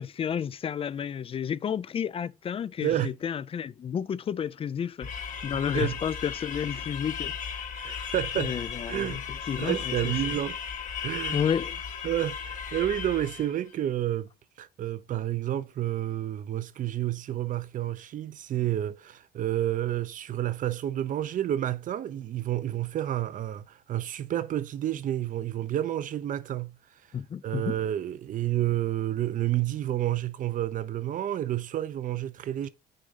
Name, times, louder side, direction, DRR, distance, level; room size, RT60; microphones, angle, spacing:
voice 1, 0.0-5.1 5.4-7.3 8.4-10.1 11.3-11.8 27.1-27.8, left 8 dB, 35° left, 0.4 m, -31 dB
voice 2, 2.8-3.1 5.7-6.0 7.8-8.5 8.9-9.2 9.6-10.6 11.0-11.4 12.0-14.3 14.6-26.8 27.4-32.7, right 12 dB, 50° right, 0.7 m, -30 dB
sound 1, 5.0-13.6, left 7 dB, 50° left, 1.4 m, -36 dB
6.6 x 3.6 x 5.6 m
cardioid pair, 110°, 17 cm